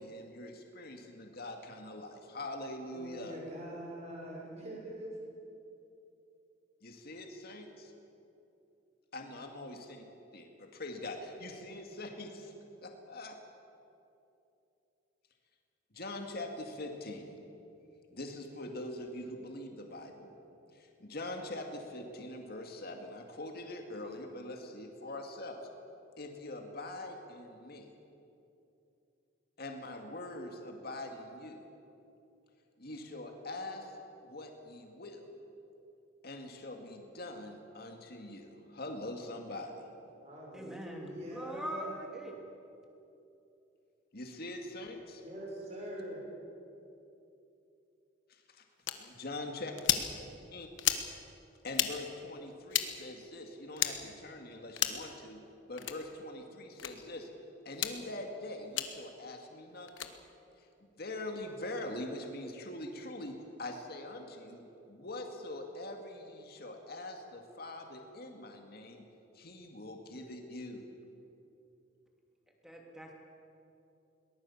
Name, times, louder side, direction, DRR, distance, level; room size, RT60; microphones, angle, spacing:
voice 1, 0.0-3.4 6.8-7.9 9.1-10.0 10.3-12.5 12.8-13.4 15.9-17.4 18.1-20.3 20.7-25.6 26.2-27.9 29.6-31.6 32.8-33.9 34.2-35.3 36.2-39.8 44.1-45.2 48.3-48.6 49.0-49.7 50.5-50.7 51.6-55.4 55.7-57.3 57.7-60.1 60.6-60.7 61.0-69.0 69.3-70.8, left 1 dB, 50° left, 3 dB, 2.2 m, -43 dB
voice 2, 2.9-5.2 40.2-42.0 45.2-46.2, right 1 dB, 35° right, -3 dB, 6.5 m, -43 dB
voice 3, 40.5-42.4 72.6-73.1, equal, 5° right, 0 dB, 2.8 m, -42 dB
sound 1, 48.9-49.0 49.8-50.1 50.8-51.1 51.7-51.9 52.7-52.9 53.8-53.9 54.7-55.0 55.8-56.0 56.8-56.9 57.7-57.9 58.8-58.9 59.9-60.1, left 11 dB, 75° left, 1.3 m, -31 dB
22.0 x 19.0 x 7.2 m, 2.8 s
head